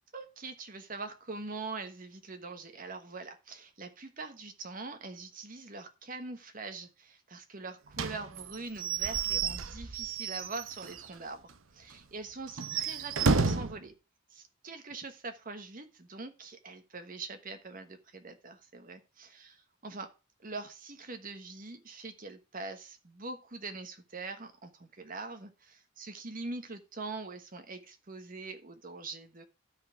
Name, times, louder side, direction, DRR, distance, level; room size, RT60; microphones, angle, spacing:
voice 1, 0.1-14.0 14.3-19.6 19.8-20.1 20.4-29.4, right 3 dB, 45° right, 7 dB, 1.3 m, -43 dB
Slam / Squeak / Wood, 7.9-11.1 11.5-11.6 11.9-12.0 12.5-13.8, right 5 dB, 80° right, 0.9 m, -31 dB
12.5 x 5.7 x 4.6 m, 0.30 s
head